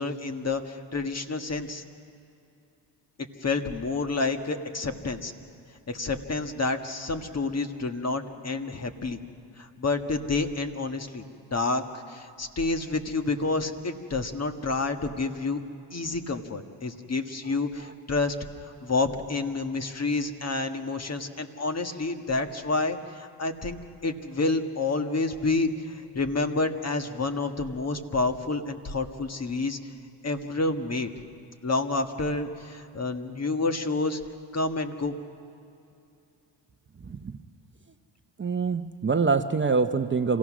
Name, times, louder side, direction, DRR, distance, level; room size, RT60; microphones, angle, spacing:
voice 1, 0.0-1.8 3.4-5.3 5.9-9.2 9.6-11.2 11.5-15.6 15.9-18.3 18.6-29.8 30.2-31.1 31.6-34.2 34.5-35.2, left 3 dB, 35° left, 6 dB, 1.6 m, -29 dB
voice 2, 37.0-37.4 38.4-40.4, right 4 dB, 25° right, 8 dB, 0.8 m, -25 dB
27.0 x 16.0 x 6.2 m, 2.7 s
supercardioid pair, 65°, 45 cm